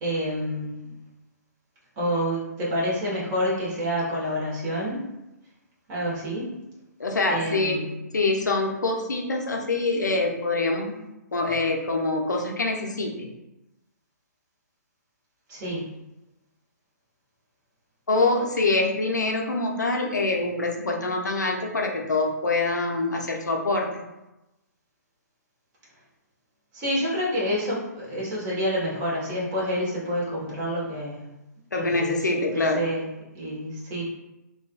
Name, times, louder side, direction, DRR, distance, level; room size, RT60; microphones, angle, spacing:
voice 1, 0.0-0.9 2.0-5.0 5.9-6.5 7.3-7.9 15.5-15.9 26.7-31.2 31.8-32.1 32.5-33.0 33.3-34.1, equal, 25° right, -7 dB, 1.3 m, -28 dB
voice 2, 7.0-7.9 8.1-11.0 11.3-13.3 18.1-23.9 31.7-32.8, left 2 dB, 75° left, 1 dB, 0.7 m, -25 dB
3.9 x 2.5 x 2.3 m, 0.96 s
figure-of-eight pair, 130°, 10 cm